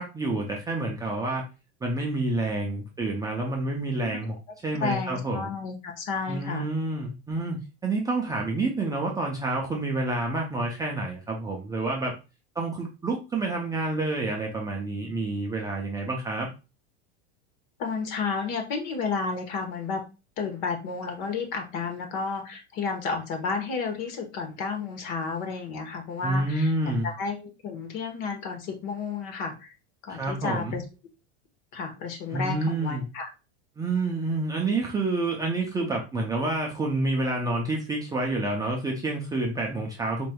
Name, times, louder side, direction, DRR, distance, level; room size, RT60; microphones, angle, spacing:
voice 1, 0.0-1.4 1.8-4.3 4.6-5.5 6.3-12.1 12.6-16.5 26.2-27.1 30.1-30.8 32.3-33.1 33.8-40.3, right 2 dB, 10° right, -1 dB, 0.4 m, -28 dB
voice 2, 4.8-6.7 17.8-20.0 20.4-26.7 27.0-29.7 30.0-30.8 31.7-33.3, left 5 dB, 50° left, 5 dB, 1.1 m, -32 dB
4.3 x 3.2 x 2.2 m, 0.30 s
supercardioid pair, 135°, 34 cm